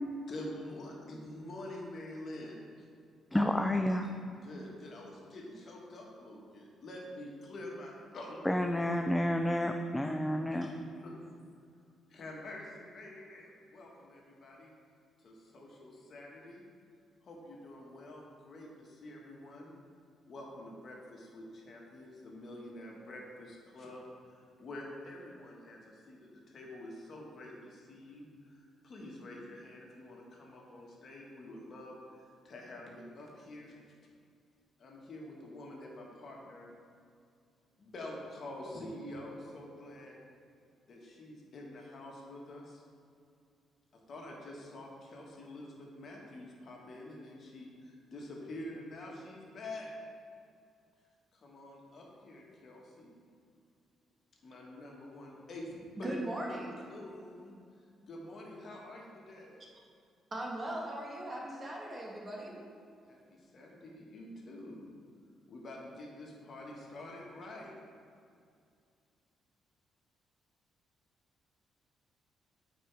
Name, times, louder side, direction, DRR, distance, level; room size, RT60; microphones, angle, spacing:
voice 1, 0.3-2.9 4.4-8.4 10.5-10.7 11.0-11.1 12.1-14.7 15.2-16.6 17.2-19.7 20.3-33.8 34.8-36.7 37.8-40.2 40.9-42.8 43.9-49.9 51.3-53.1 54.4-56.4 56.9-57.5 58.0-59.6 63.1-64.8 65.5-67.7, left 1 dB, 55° left, -2 dB, 1.5 m, -47 dB
voice 2, 3.3-4.1 8.5-10.7, left 1 dB, 10° left, 5 dB, 0.4 m, -30 dB
voice 3, 56.0-56.7 60.3-62.6, right 1 dB, 35° right, -2 dB, 1.6 m, -39 dB
8.7 x 4.6 x 3.4 m, 2.3 s
supercardioid pair, 65°, 0 cm